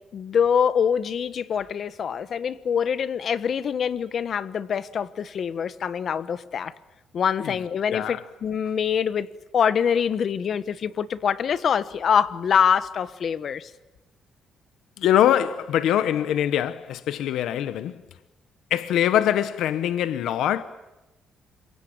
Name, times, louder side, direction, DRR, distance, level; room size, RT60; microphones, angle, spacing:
voice 1, 0.1-6.7 7.1-9.3 9.5-13.7, left 7 dB, 55° left, 1.3 m, -24 dB
voice 2, 7.9-8.2 15.0-18.0 18.7-20.6, left 11 dB, 80° left, 1.0 m, -23 dB
27.5 x 23.0 x 8.8 m
cardioid pair, 90°, 0 cm